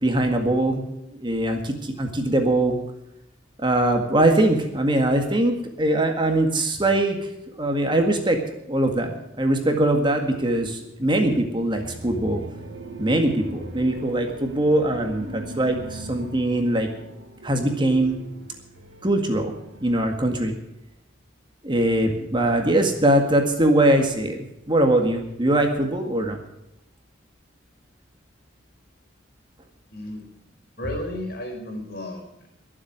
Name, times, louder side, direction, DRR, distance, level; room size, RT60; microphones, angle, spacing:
voice 1, 0.0-0.8 1.2-2.8 3.6-7.2 7.5-8.4 8.7-9.1 9.4-12.4 13.0-16.9 17.4-18.2 19.0-19.5 19.8-20.6 21.6-26.4, right 1 dB, 25° right, 4 dB, 1.9 m, -22 dB
sound 1, 11.8-20.0, right 1 dB, 75° right, 2.1 m, -39 dB
voice 2, 29.9-30.2 30.8-32.5, left 1 dB, 55° left, 3 dB, 4.6 m, -33 dB
22.5 x 7.7 x 6.2 m, 0.86 s
head